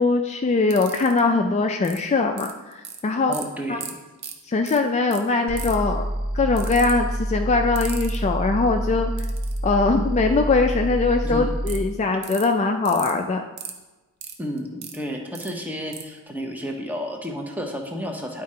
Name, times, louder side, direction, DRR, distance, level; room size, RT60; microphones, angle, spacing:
voice 1, 0.0-3.4 3.7-3.8 4.5-6.0 6.3-9.3 9.6-13.4, left 3 dB, 30° left, 4 dB, 0.3 m, -21 dB
sound 1, 0.7-1.2 1.8-2.0 2.4-3.0 3.3-3.4 3.8-3.9 4.2-4.3 4.7-4.8 5.1-5.2 5.6-5.9 6.6-6.9 7.8-8.2 9.2-9.6 11.7-11.8 12.2-12.5 12.9-13.1 13.6-13.7 14.2-15.0 15.3-15.5 15.9-16.0, right 8 dB, 50° right, 0.7 m, -35 dB
voice 2, 3.3-3.9 11.2-11.5 14.4-18.4, equal, 10° right, 2 dB, 0.8 m, -31 dB
sound 2, 5.5-11.9, equal, 75° right, 1.2 m, -27 dB
10.5 x 3.7 x 4.3 m, 1.1 s
head